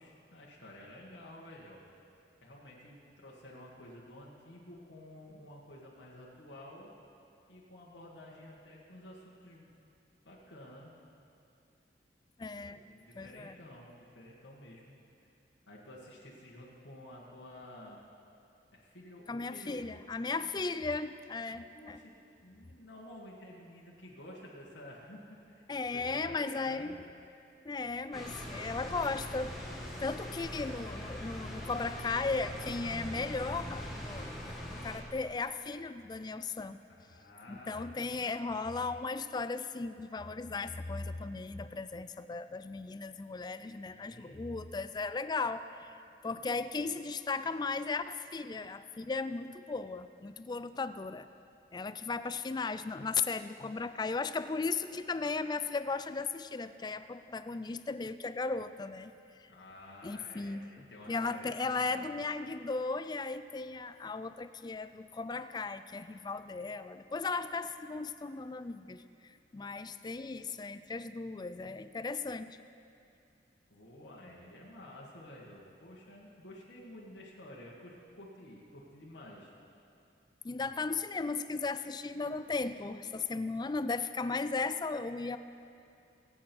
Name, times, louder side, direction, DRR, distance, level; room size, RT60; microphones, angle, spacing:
voice 1, 0.0-1.8 2.4-6.9 7.5-9.7 10.3-10.9 12.6-15.0 15.7-18.0 18.7-19.8 20.3-20.6 21.7-22.1 22.4-25.4 25.9-27.0 30.2-30.4 36.9-38.6 43.6-44.4 59.5-62.0 73.7-79.5 80.5-80.9, left 1 dB, 80° left, -5 dB, 1.9 m, -51 dB
voice 2, 12.4-12.8 13.2-13.6 19.3-22.0 25.7-27.0 27.6-29.6 30.0-36.8 37.5-45.9 46.2-51.3 51.7-59.1 60.0-60.6 61.1-72.6 80.4-85.4, left 4 dB, 25° left, 13 dB, 0.4 m, -36 dB
sound 1, 28.1-35.0, equal, ahead, 1.9 m, -42 dB
21.5 x 8.7 x 4.6 m, 2.6 s
head